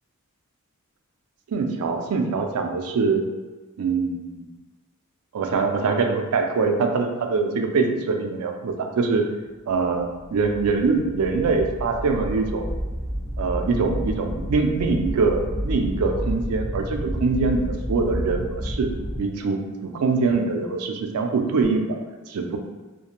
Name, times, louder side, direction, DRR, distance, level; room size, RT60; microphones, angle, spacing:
voice 1, 1.5-3.3 3.8-4.5 5.3-9.3 9.7-12.7 13.4-18.9 19.2-22.0 22.3-22.6, right 4 dB, 85° right, 3 dB, 0.4 m, -23 dB
sound 1, 10.0-19.2, equal, 10° right, 0.9 m, -30 dB
2.4 x 2.1 x 2.9 m, 1.2 s
head